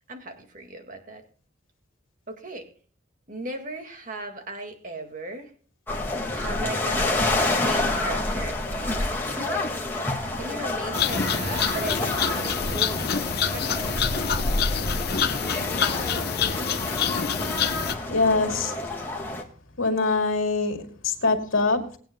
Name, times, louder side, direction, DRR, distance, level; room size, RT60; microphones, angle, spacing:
voice 1, 0.1-1.2 2.3-2.7 3.3-5.5 6.3-7.2 7.5-9.7 10.4-13.2 13.5-13.9, right 2 dB, 40° right, 1.9 m, -37 dB
sound 1, 5.9-19.4, left 2 dB, 10° left, 1.8 m, -28 dB
sound 2, 10.9-18.0, left 7 dB, 50° left, 0.8 m, -27 dB
voice 2, 18.1-18.7 19.8-22.0, left 3 dB, 80° left, 2.6 m, -24 dB
20.0 x 9.1 x 2.2 m
head